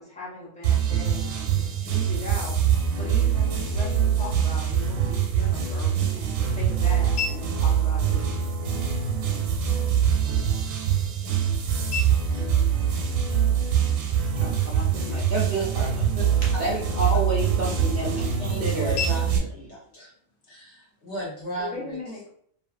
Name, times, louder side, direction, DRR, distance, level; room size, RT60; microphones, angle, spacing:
voice 1, 0.0-2.6 3.0-8.5 21.6-22.3, left 2 dB, 5° left, -7 dB, 0.7 m, -39 dB
sound 1, 0.6-19.4, right 8 dB, 90° right, 1.0 m, -24 dB
sound 2, 5.4-21.4, left 5 dB, 85° left, 1.1 m, -41 dB
voice 2, 14.3-16.0 16.6-18.2 18.6-19.0, right 2 dB, 60° right, -3 dB, 0.6 m, -29 dB
voice 3, 18.4-20.1 20.5-22.0, equal, 60° left, -5 dB, 1.3 m, -36 dB
2.6 x 2.6 x 2.4 m, 0.66 s
omnidirectional pair, 1.3 m